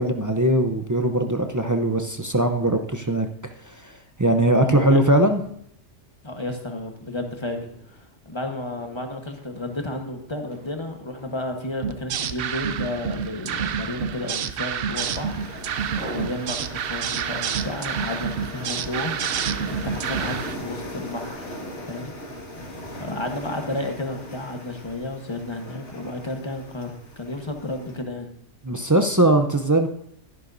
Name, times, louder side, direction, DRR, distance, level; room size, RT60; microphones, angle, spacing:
voice 1, 0.0-3.3 3.6-5.4 28.6-29.9, right 1 dB, 25° right, 5 dB, 0.4 m, -20 dB
voice 2, 4.6-5.0 6.2-8.0 8.2-21.5 21.9-22.1 22.9-28.3, left 2 dB, 25° left, 4 dB, 1.2 m, -32 dB
sound 1, 6.9-15.3 15.8-16.4 16.8-22.0, right 1 dB, 85° right, 4.8 m, -43 dB
sound 2, 11.8-20.5, right 8 dB, 60° right, 0.7 m, -29 dB
sound 3, 14.9-28.0, left 1 dB, 65° left, 2.2 m, -39 dB
13.0 x 11.0 x 2.6 m, 0.72 s
omnidirectional pair, 1.3 m